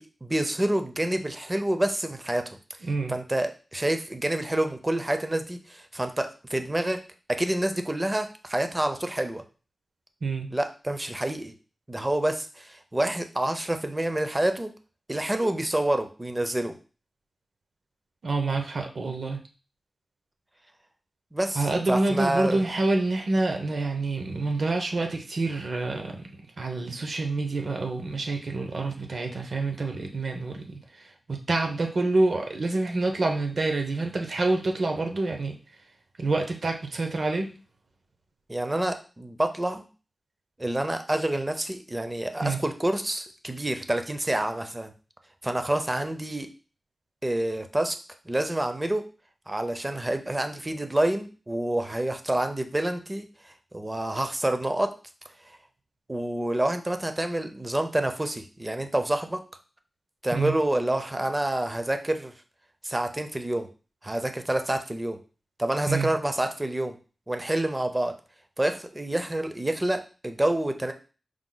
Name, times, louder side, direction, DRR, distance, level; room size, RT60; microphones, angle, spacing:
voice 1, 0.0-2.6 3.1-7.0 7.3-9.4 10.5-11.5 11.9-14.7 15.1-16.7 21.3-22.6 38.5-39.9 40.6-44.9 45.4-46.5 47.2-48.0 48.3-49.0 49.5-54.9 56.1-59.4 60.2-62.3 62.8-63.7 64.0-65.2 65.6-67.0 67.3-68.1 68.6-70.9, right 1 dB, 20° right, 7 dB, 0.5 m, -28 dB
voice 2, 18.2-19.4 21.6-26.3 26.6-30.8 31.5-35.6 36.2-37.5 42.4-42.6 60.3-60.5 65.9-66.1, right 2 dB, 65° right, 3 dB, 0.8 m, -27 dB
4.8 x 2.2 x 3.8 m, 0.35 s
wide cardioid pair, 115°, 0 cm